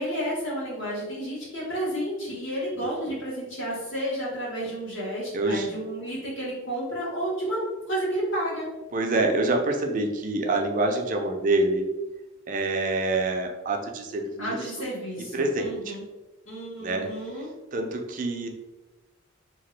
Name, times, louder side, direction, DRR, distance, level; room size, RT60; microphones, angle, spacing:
voice 1, 0.0-8.7 14.4-16.0 16.4-17.5, equal, 75° left, -6 dB, 1.4 m, -31 dB
voice 2, 5.3-5.7 8.9-11.9 12.5-14.9 15.3-16.0 16.8-17.1 17.7-18.5, right 2 dB, 40° right, 3 dB, 0.4 m, -26 dB
2.8 x 2.4 x 3.2 m, 1.1 s
head